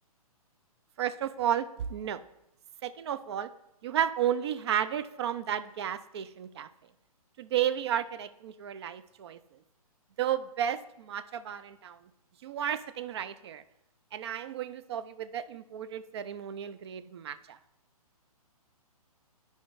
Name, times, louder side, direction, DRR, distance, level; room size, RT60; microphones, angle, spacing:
voice 1, 1.0-2.2 2.8-3.5 3.8-6.7 7.4-9.4 10.2-12.0 12.4-13.6 14.1-17.6, right 10 dB, 45° right, 13 dB, 0.4 m, -32 dB
11.0 x 5.0 x 2.5 m, 0.84 s
hypercardioid pair, 135°, 19 cm